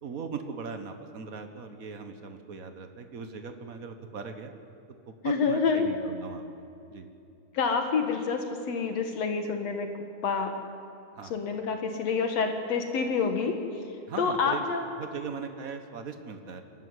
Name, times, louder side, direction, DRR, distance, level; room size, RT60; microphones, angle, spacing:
voice 1, 0.0-4.5 5.1-6.5 6.9-7.1 11.1-11.4 14.1-14.7 15.0-16.6, right 5 dB, 55° right, 7 dB, 1.0 m, -39 dB
voice 2, 5.2-5.9 7.5-9.9 10.2-10.5 11.3-13.6 14.2-14.9, left 5 dB, 60° left, 5 dB, 2.5 m, -27 dB
25.5 x 13.5 x 9.6 m, 2.7 s
omnidirectional pair, 3.4 m